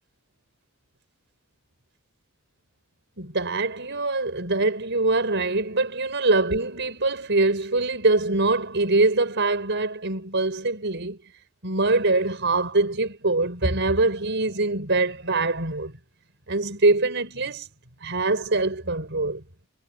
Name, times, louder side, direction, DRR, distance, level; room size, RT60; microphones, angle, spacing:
voice 1, 3.2-11.2 11.6-15.9 16.5-17.7 18.0-19.4, right 2 dB, 55° right, 5.7 m, -23 dB
head